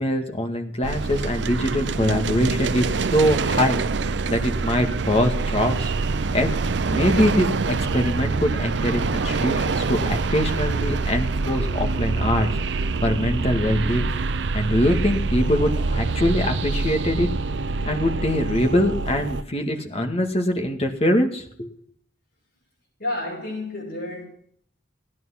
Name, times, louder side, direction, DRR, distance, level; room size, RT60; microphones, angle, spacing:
voice 1, 0.0-3.8 4.3-5.9 6.3-6.5 6.9-12.6 13.0-14.1 14.5-17.3 17.9-21.7, left 1 dB, 35° left, 2.1 m, -23 dB
sound 1, 0.8-19.4, right 4 dB, 75° right, 0.6 m, -25 dB
voice 2, 23.0-24.3, left 2 dB, 55° left, 7.5 m, -30 dB
17.0 x 11.0 x 5.9 m
head